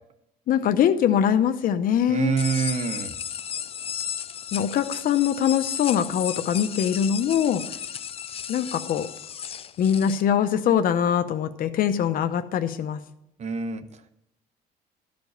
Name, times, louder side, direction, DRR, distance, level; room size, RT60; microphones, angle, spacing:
voice 1, 0.5-2.4 4.5-7.6 8.5-9.1 9.8-13.0, left 9 dB, 55° left, 8 dB, 0.8 m, -23 dB
voice 2, 2.1-3.1 13.4-13.8, right 6 dB, 40° right, 10 dB, 1.0 m, -26 dB
sound 1, 2.4-10.2, left 8 dB, 35° left, 0.4 m, -34 dB
13.0 x 5.2 x 8.0 m, 0.80 s
cardioid pair, 110°, 17 cm